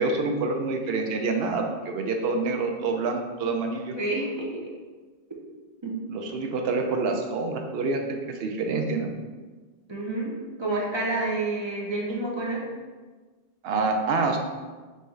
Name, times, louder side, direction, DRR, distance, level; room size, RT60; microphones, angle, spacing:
voice 1, 0.0-3.9 6.1-9.2 13.6-14.4, right 3 dB, 75° right, 4 dB, 0.8 m, -27 dB
voice 2, 3.9-4.6 5.8-6.0 9.9-10.3 10.6-12.6, right 2 dB, 30° right, -2 dB, 0.6 m, -29 dB
5.6 x 2.7 x 3.1 m, 1.4 s
omnidirectional pair, 1.0 m